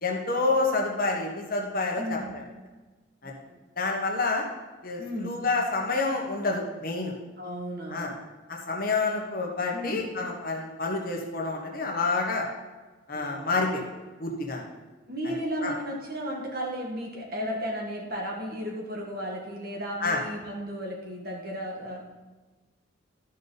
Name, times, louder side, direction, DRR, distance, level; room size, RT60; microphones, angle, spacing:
voice 1, 0.0-2.4 3.2-3.3 3.8-4.5 4.8-7.1 7.9-8.1 8.5-12.4 13.1-13.8 14.2-14.7 15.6-15.7 20.0-20.2, left 3 dB, 45° left, 0 dB, 1.3 m, -28 dB
voice 2, 2.0-2.3 3.2-3.6 5.0-5.3 7.4-8.2 9.7-10.0 13.1-13.4 15.1-22.1, equal, 50° right, -1 dB, 1.9 m, -34 dB
12.5 x 5.4 x 4.1 m, 1.2 s
head